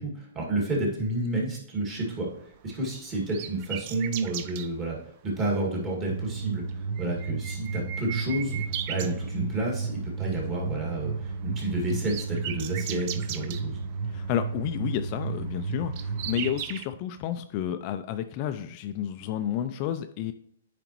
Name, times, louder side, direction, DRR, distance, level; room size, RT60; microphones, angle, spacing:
voice 1, 0.0-2.3 2.6-5.0 5.2-13.8, right 2 dB, 25° right, -3 dB, 2.1 m, -30 dB
sound 1, 2.1-4.7 5.6-5.9 6.2-6.3 6.6-9.8 10.1-10.5 10.7-16.8, right 10 dB, 40° right, 0.4 m, -39 dB
sound 2, 6.1-16.5, right 4 dB, 70° right, 1.1 m, -33 dB
voice 2, 14.1-20.3, left 10 dB, 35° left, 9 dB, 0.3 m, -31 dB
9.1 x 5.0 x 3.0 m, 0.66 s
hypercardioid pair, 150°, 0 cm